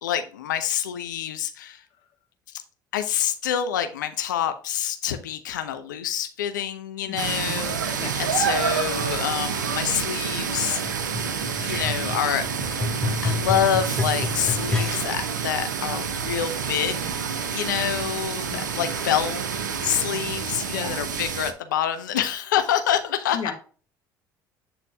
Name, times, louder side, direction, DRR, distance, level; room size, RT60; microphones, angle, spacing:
voice 1, 0.0-1.8 2.9-10.8 11.6-12.9 13.2-17.1 17.5-19.5 19.8-23.5, left 10 dB, 85° left, 0.7 m, -27 dB
voice 2, 7.1-7.6 8.0-8.2 18.5-18.9 20.7-21.0 23.3-23.5, left 6 dB, 55° left, 2.4 m, -35 dB
sound 1, 7.2-21.5, right 6 dB, 90° right, 0.7 m, -28 dB
sound 2, 10.9-15.3 16.0-16.1, left 3 dB, 5° left, 1.9 m, -29 dB
8.6 x 4.1 x 3.4 m
hypercardioid pair, 60°, 10 cm